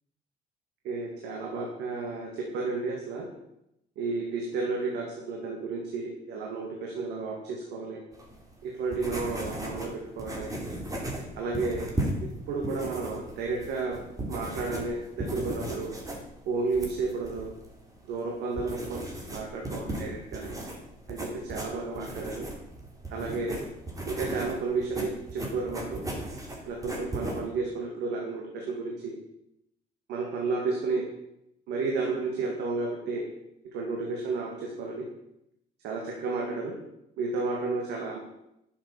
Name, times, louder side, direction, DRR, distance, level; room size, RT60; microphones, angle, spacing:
voice 1, 0.8-3.3 4.0-8.0 8.6-10.5 11.4-11.8 12.5-14.0 14.3-15.9 16.5-17.5 18.1-20.5 21.1-22.5 23.1-23.6 24.1-26.0 26.7-29.1 30.1-31.0 31.7-33.3 33.7-35.0 35.8-36.7 37.2-38.2, right 3 dB, 85° right, 0 dB, 2.3 m, -32 dB
sound 1, 8.1-27.4, right 1 dB, 20° right, 3.1 m, -37 dB
10.5 x 7.3 x 7.0 m, 0.82 s
cardioid pair, 110°, 17 cm